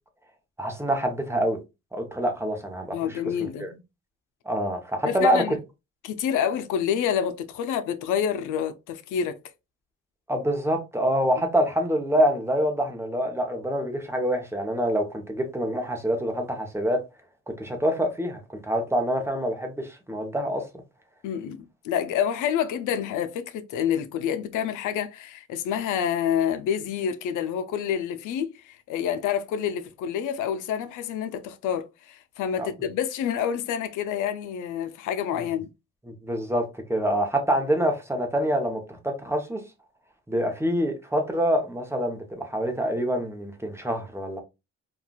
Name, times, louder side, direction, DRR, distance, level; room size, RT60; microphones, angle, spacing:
voice 1, 0.6-1.6 1.9-3.7 4.5-5.4 10.3-17.0 17.5-20.6 32.6-32.7 36.1-39.6 40.3-44.4, equal, 10° right, 0.8 m, -26 dB
voice 2, 2.9-3.8 5.0-5.6 6.0-9.4 21.2-35.7, left 8 dB, 85° left, 0.5 m, -28 dB
3.7 x 2.4 x 2.2 m
cardioid pair, 90°, 30 cm